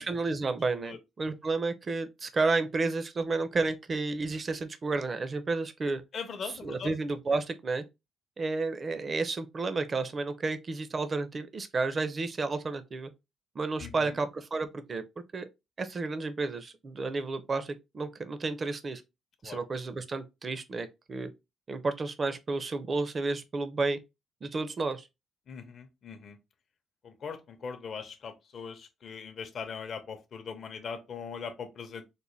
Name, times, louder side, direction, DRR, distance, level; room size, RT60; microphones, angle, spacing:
voice 1, 0.0-6.0 6.4-7.8 8.4-13.1 13.6-15.0 15.3-15.5 15.8-19.0 19.4-21.3 21.7-24.0 24.4-25.1, right 3 dB, 40° right, 0.5 m, -31 dB
voice 2, 6.1-6.9 13.8-14.1 19.4-19.6 25.5-26.4 27.0-32.0, left 6 dB, 55° left, 0.6 m, -40 dB
4.0 x 2.1 x 3.1 m
cardioid pair, 90°, 0 cm